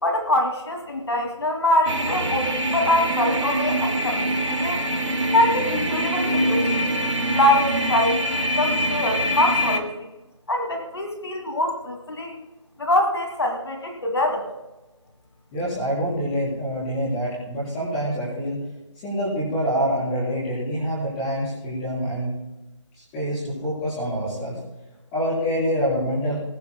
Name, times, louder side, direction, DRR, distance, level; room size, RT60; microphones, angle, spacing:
voice 1, 0.0-4.8 5.3-6.9 7.3-10.1 10.5-12.4 12.8-14.5, left 1 dB, 60° left, 2 dB, 2.3 m, -24 dB
sound 1, 1.8-9.8, right 1 dB, 85° right, 2.7 m, -24 dB
voice 2, 15.5-18.7 19.0-22.3 23.0-24.6 25.1-26.4, equal, 10° left, -8 dB, 3.9 m, -26 dB
21.0 x 13.0 x 2.2 m, 1.1 s
figure-of-eight pair, 175°, 16 cm